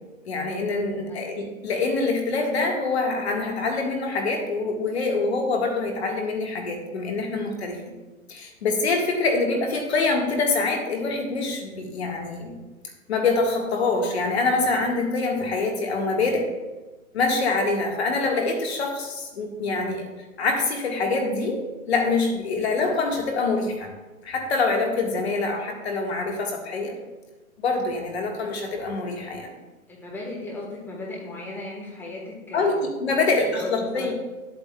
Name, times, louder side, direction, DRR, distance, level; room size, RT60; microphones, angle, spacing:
voice 1, 0.3-7.9 8.3-12.6 13.1-16.5 17.1-20.0 20.4-23.9 24.2-27.0 27.6-29.5 32.5-34.1, left 3 dB, 50° left, 2 dB, 1.7 m, -25 dB
voice 2, 29.9-32.8 33.3-34.1, left 2 dB, 5° left, -4 dB, 1.4 m, -36 dB
10.5 x 8.0 x 2.3 m, 1.2 s
figure-of-eight pair, 130°, 42 cm